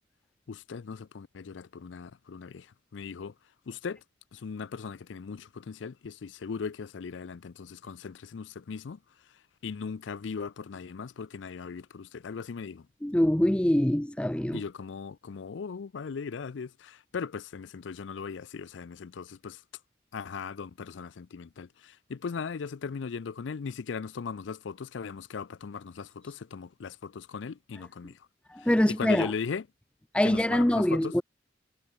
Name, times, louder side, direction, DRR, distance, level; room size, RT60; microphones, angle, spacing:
voice 1, 0.5-2.7 2.9-3.3 3.7-4.0 4.3-9.0 9.6-12.9 14.5-19.6 20.1-28.2 28.9-29.6 30.2-31.2, left 5 dB, 80° left, 0.5 m, -38 dB
voice 2, 13.0-14.6 28.5-29.3 30.1-31.2, left 1 dB, 5° left, 0.4 m, -24 dB
head